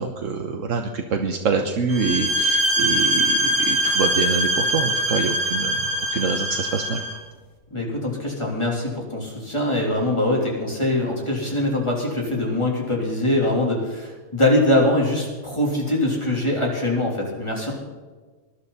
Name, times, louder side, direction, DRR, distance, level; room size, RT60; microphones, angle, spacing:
voice 1, 0.0-5.8 6.1-7.0, right 5 dB, 75° right, 4 dB, 1.4 m, -25 dB
sound 1, 1.9-7.2, right 1 dB, 15° right, 2.5 m, -22 dB
voice 2, 7.7-17.7, left 1 dB, 20° left, -2 dB, 3.6 m, -23 dB
20.0 x 12.0 x 4.1 m, 1.4 s
omnidirectional pair, 1.4 m